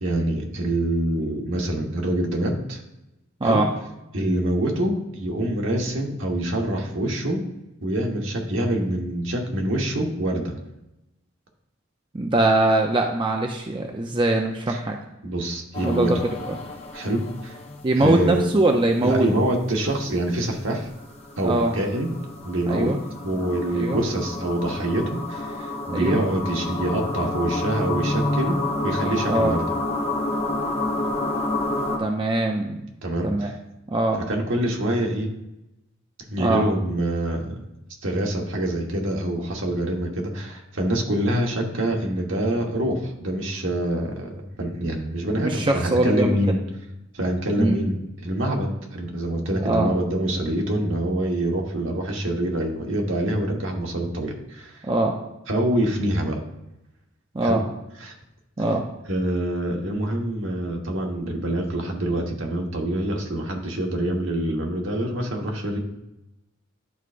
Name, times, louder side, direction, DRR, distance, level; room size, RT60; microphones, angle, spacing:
voice 1, 0.0-2.8 3.4-3.7 4.1-7.4 7.8-10.5 14.7-14.8 15.2-16.1 16.9-17.6 17.9-18.5 19.0-20.9 21.4-22.1 22.4-22.9 23.2-28.6 28.8-29.6 33.0-33.6 34.3-35.3 36.3-37.6 38.0-46.6 47.1-54.8 55.5-56.4 57.4-57.6 58.0-58.1 59.1-65.8, right 1 dB, 70° right, 0 dB, 1.3 m, -25 dB
voice 2, 12.1-15.0 15.8-16.2 16.5-16.6 17.8-19.3 21.4-21.7 22.7-23.0 23.7-24.0 25.9-26.2 29.3-29.5 32.0-32.8 33.2-33.5 33.9-34.2 36.4-36.6 44.8-44.9 45.4-46.4 47.6-47.8 49.6-49.9 54.8-55.1 57.3-57.6 58.6-58.8, right 2 dB, 25° right, 2 dB, 0.5 m, -22 dB
sound 1, 15.7-17.9 20.3-32.0, left 2 dB, 30° left, 1.1 m, -29 dB
11.0 x 4.7 x 2.5 m, 0.93 s
head